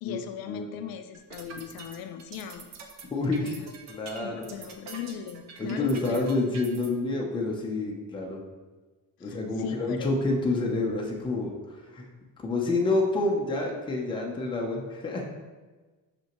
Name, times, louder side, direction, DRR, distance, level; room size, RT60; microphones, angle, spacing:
voice 1, 0.0-2.7 3.4-3.7 4.2-6.3 9.2-10.2, left 9 dB, 70° left, 7 dB, 0.5 m, -38 dB
sound 1, 1.1-6.9, right 4 dB, 45° right, 0.7 m, -45 dB
voice 2, 3.1-3.5 3.9-4.5 5.6-8.4 9.2-12.1 12.4-15.2, left 2 dB, 15° left, -1 dB, 0.6 m, -28 dB
5.9 x 5.4 x 3.0 m, 1.3 s
cardioid pair, 175°, 37 cm